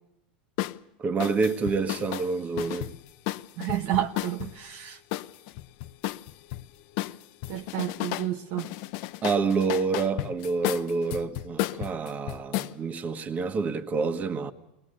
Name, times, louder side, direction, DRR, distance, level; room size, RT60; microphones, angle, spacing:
sound 1, 0.6-0.8 1.2-4.5 5.1-6.6 7.0-8.3 8.6-12.7, left 16 dB, 60° left, 0.7 m, -33 dB
voice 1, 1.0-2.9 9.2-14.5, right 4 dB, 30° right, 1.5 m, -28 dB
voice 2, 3.6-5.0 7.5-8.7, right 12 dB, 55° right, 1.1 m, -30 dB
21.5 x 20.0 x 6.6 m
hypercardioid pair, 105°, 5 cm